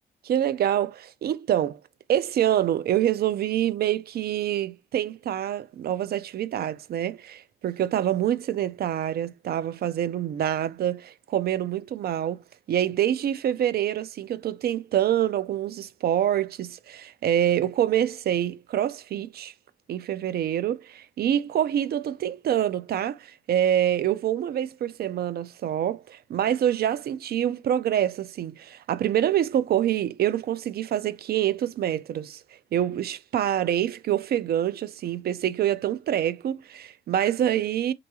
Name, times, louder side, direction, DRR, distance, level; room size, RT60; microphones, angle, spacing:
voice 1, 0.2-1.8 2.1-12.4 12.7-19.5 19.9-32.4 32.7-37.9, right 11 dB, 55° right, 0.4 m, -26 dB
3.9 x 2.3 x 2.7 m
cardioid pair, 90°, 20 cm